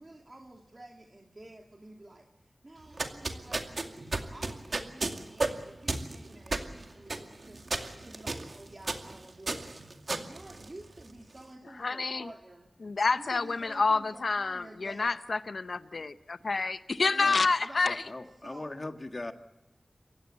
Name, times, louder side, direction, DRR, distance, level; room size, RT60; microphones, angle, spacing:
voice 1, 0.0-7.6 7.9-12.7 13.2-15.1 16.4-16.5 16.9-17.9 18.4-18.7, right 2 dB, 40° right, 1 dB, 2.6 m, -50 dB
sound 1, 2.8-11.2, right 3 dB, 65° right, 2.3 m, -34 dB
voice 2, 11.8-12.3 12.8-18.0, left 4 dB, 75° left, 12 dB, 0.7 m, -28 dB
voice 3, 17.8-19.3, left 2 dB, 45° left, 7 dB, 1.8 m, -39 dB
28.0 x 16.0 x 8.5 m, 1.0 s
wide cardioid pair, 50°, 0 cm